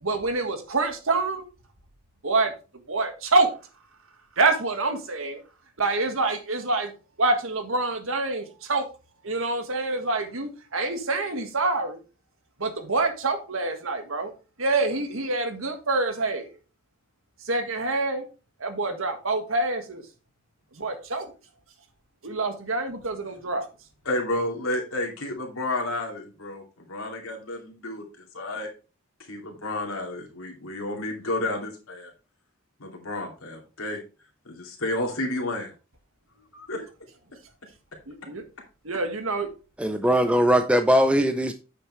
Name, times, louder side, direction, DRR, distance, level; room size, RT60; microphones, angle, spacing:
voice 1, 0.0-1.5 2.2-3.5 4.4-5.4 5.8-6.9 7.2-8.9 9.2-12.0 12.6-14.3 14.6-16.5 17.4-18.3 18.6-20.0 20.7-21.3 22.2-23.7 38.1-38.4 38.8-39.5, right 3 dB, 75° right, 1.7 m, -26 dB
voice 2, 24.0-28.7 29.3-32.1 32.8-34.0 34.4-35.7 36.5-36.8, left 1 dB, 85° left, 2.6 m, -31 dB
voice 3, 39.8-41.5, equal, 5° right, 0.5 m, -20 dB
8.9 x 6.6 x 3.2 m
head